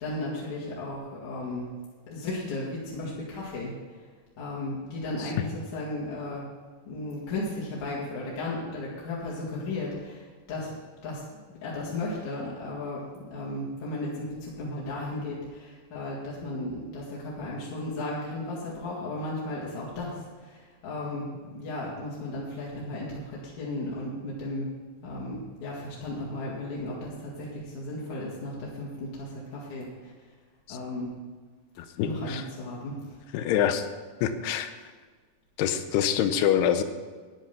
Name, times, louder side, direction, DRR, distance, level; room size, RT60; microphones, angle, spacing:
voice 1, 0.0-1.7 2.1-4.0 4.4-6.4 6.8-10.7 11.0-24.7 25.0-30.1 30.7-31.1 32.0-33.0, left 2 dB, 50° left, -6 dB, 2.9 m, -35 dB
voice 2, 31.8-32.4 33.3-33.9 34.2-34.7 35.6-36.8, left 9 dB, 80° left, 10 dB, 2.5 m, -26 dB
11.0 x 10.0 x 5.8 m, 1.5 s
omnidirectional pair, 5.1 m